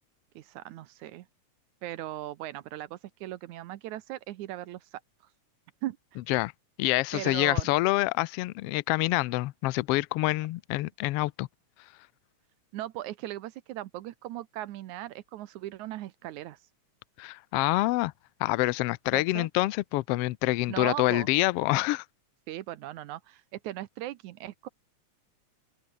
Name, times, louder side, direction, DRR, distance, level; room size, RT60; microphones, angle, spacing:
voice 1, 0.4-1.3 1.8-5.0 5.8-6.2 7.1-7.7 12.7-16.6 19.1-19.5 20.7-21.3 22.5-24.7, right 14 dB, 85° right, 2.3 m, -38 dB
voice 2, 6.8-11.5 17.2-18.1 18.4-22.0, left 19 dB, 85° left, 1.3 m, -26 dB
open air
omnidirectional pair, 3.4 m